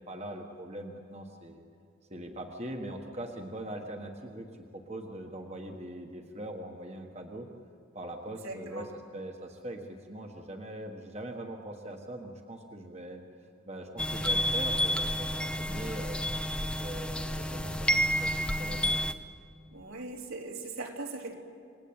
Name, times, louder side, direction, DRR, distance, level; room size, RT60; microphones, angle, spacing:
voice 1, 0.0-1.6 2.1-7.5 7.9-16.2 16.6-19.0, right 1 dB, 30° right, 3 dB, 1.4 m, -42 dB
voice 2, 8.3-8.9 19.7-21.3, right 2 dB, 75° right, 1 dB, 3.5 m, -40 dB
sound 1, 14.0-19.1, equal, 5° left, 0.7 m, -30 dB
28.5 x 20.5 x 8.9 m, 2.6 s
head